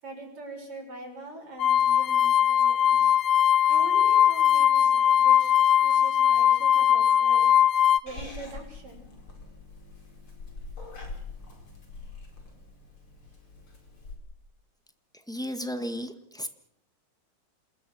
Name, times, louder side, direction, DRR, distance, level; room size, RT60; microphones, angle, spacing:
voice 1, 0.0-3.1 3.7-7.5 8.0-9.1, right 2 dB, 45° right, 2 dB, 7.4 m, -43 dB
sound 1, 1.6-8.0, left 9 dB, 65° left, 1.1 m, -20 dB
Purr / Meow, 8.1-14.1, left 3 dB, 40° left, 5.6 m, -44 dB
voice 2, 15.1-16.5, equal, 5° left, 7 dB, 0.4 m, -34 dB
28.0 x 21.0 x 6.3 m, 0.70 s
omnidirectional pair, 3.5 m